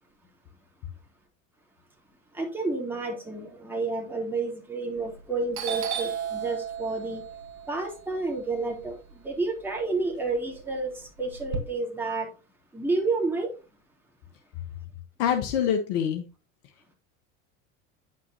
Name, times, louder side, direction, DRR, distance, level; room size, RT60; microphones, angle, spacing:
voice 1, 2.3-7.2 7.7-9.0 9.2-12.3 12.7-13.5, right 3 dB, 5° right, 3.3 m, -30 dB
Doorbell, 5.0-5.3 5.5-9.7 10.1-11.6, right 7 dB, 65° right, 1.7 m, -34 dB
voice 2, 15.2-16.3, left 8 dB, 65° left, 1.3 m, -25 dB
9.5 x 6.1 x 2.8 m
hypercardioid pair, 90°, 39 cm